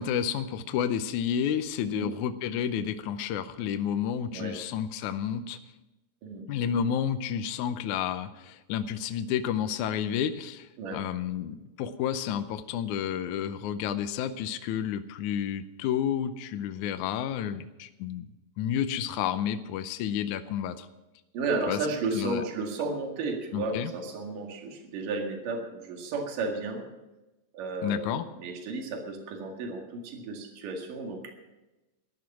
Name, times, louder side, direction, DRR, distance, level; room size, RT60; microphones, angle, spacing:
voice 1, 0.0-5.6 6.5-18.3 18.6-20.9 21.7-21.8 22.1-22.4 23.5-23.9 27.8-28.3, left 9 dB, 75° left, 9 dB, 2.0 m, -30 dB
voice 2, 21.3-26.9 27.5-31.3, right 3 dB, 70° right, 2 dB, 3.6 m, -33 dB
14.0 x 11.5 x 6.1 m, 1.0 s
omnidirectional pair, 3.9 m